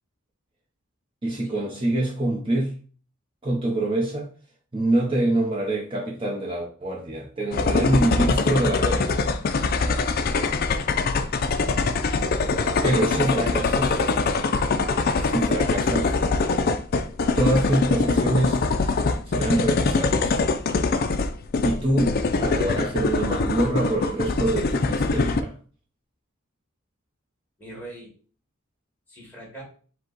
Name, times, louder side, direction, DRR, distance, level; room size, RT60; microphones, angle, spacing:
voice 1, 1.2-2.7 3.4-4.3 4.7-9.1 12.8-14.0 15.2-16.1 17.3-18.6 19.3-20.4 21.6-25.5, right 1 dB, 25° right, -3 dB, 0.7 m, -25 dB
sound 1, 7.5-25.4, left 4 dB, 45° left, 0.4 m, -23 dB
voice 2, 12.5-13.0 27.6-28.1 29.1-29.6, right 1 dB, 10° left, -4 dB, 1.6 m, -41 dB
5.1 x 2.2 x 3.9 m, 0.40 s
head